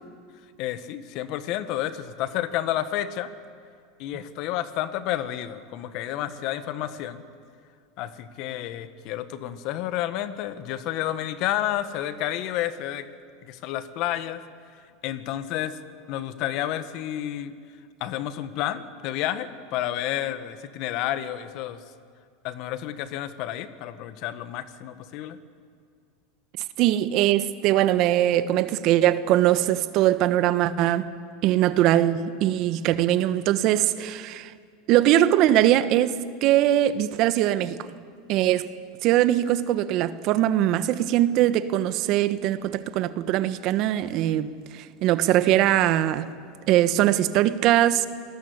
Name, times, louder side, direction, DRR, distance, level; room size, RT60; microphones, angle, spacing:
voice 1, 0.6-3.3 4.0-7.2 8.0-13.1 13.5-14.4 15.0-15.8 16.1-17.5 18.0-21.8 22.4-25.4, left 12 dB, 55° left, 1.5 m, -30 dB
voice 2, 26.8-31.1 31.4-34.5 34.9-37.8 38.3-38.7 39.0-46.3 46.7-48.1, right 13 dB, 55° right, 1.2 m, -21 dB
27.5 x 19.0 x 8.1 m
hypercardioid pair, 105°, 0 cm